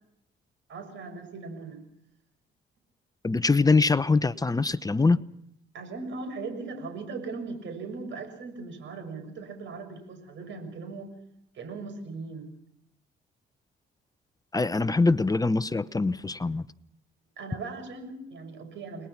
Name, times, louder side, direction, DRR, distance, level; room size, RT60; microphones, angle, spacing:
voice 1, 0.7-1.8 5.7-11.2 11.5-12.5 17.4-19.1, right 4 dB, 70° right, 6.8 m, -39 dB
voice 2, 3.2-5.2 14.5-16.6, left 3 dB, 20° left, 0.9 m, -23 dB
30.0 x 20.5 x 6.0 m
cardioid pair, 90°, 20 cm